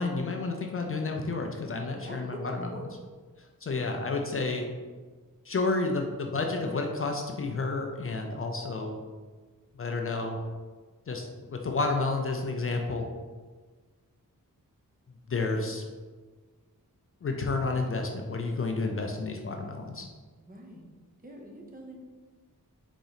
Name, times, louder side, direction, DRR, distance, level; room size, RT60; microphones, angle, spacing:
voice 1, 0.0-2.7 3.6-4.7 5.5-9.0 9.8-10.4 11.1-13.1 15.3-15.9 17.2-20.1, left 3 dB, 40° left, 2 dB, 0.4 m, -30 dB
voice 2, 1.9-2.9 20.4-20.9 21.2-22.0, right 1 dB, 25° right, 0 dB, 0.7 m, -44 dB
3.9 x 3.0 x 4.0 m, 1.4 s
wide cardioid pair, 125°, 33 cm